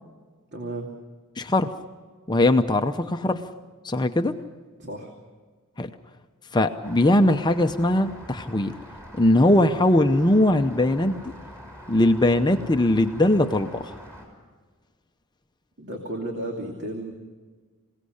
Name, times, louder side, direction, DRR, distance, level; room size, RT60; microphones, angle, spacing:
voice 1, 0.5-0.9 4.8-5.1 15.8-17.1, right 1 dB, 50° right, 1 dB, 2.7 m, -33 dB
voice 2, 1.4-1.7 2.3-3.4 3.8-4.3 5.8-5.9 6.5-8.7 9.1-11.3 11.9-14.0, left 1 dB, 20° left, 7 dB, 0.7 m, -20 dB
Rain, 6.8-14.3, equal, 10° right, 6.1 m, -44 dB
27.0 x 17.5 x 6.5 m, 1.4 s
head